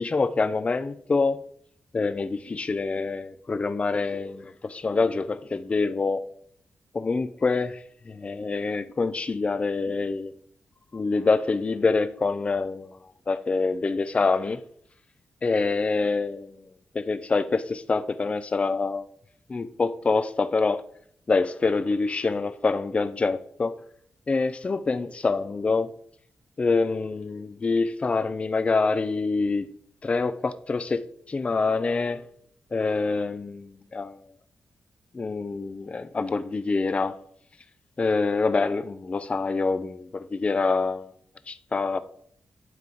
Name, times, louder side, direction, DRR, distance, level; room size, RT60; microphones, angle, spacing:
voice 1, 0.0-1.4 1.9-6.2 6.9-10.3 10.9-13.0 13.3-14.6 15.4-16.6 16.9-19.0 19.5-20.8 21.3-23.8 24.3-25.9 26.6-29.7 30.0-32.2 32.7-34.3 35.1-37.2 38.0-41.1 41.5-42.0, left 4 dB, 30° left, 0.4 m, -26 dB
9.0 x 9.0 x 3.9 m
wide cardioid pair, 130°, 4 cm